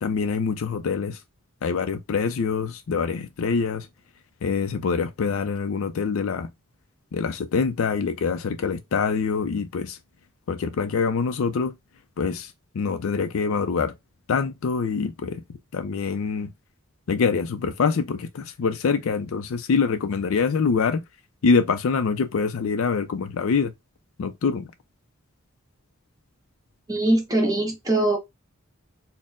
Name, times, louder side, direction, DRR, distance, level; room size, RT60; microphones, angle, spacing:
voice 1, 0.0-1.2 1.6-3.9 4.4-6.5 7.1-10.0 10.5-11.7 12.2-13.9 14.3-15.4 15.7-16.5 17.1-21.0 21.4-23.7 24.2-24.7, left 5 dB, 70° left, 0.4 m, -25 dB
voice 2, 26.9-28.2, right 1 dB, 15° right, 1.0 m, -22 dB
4.2 x 2.1 x 3.5 m
head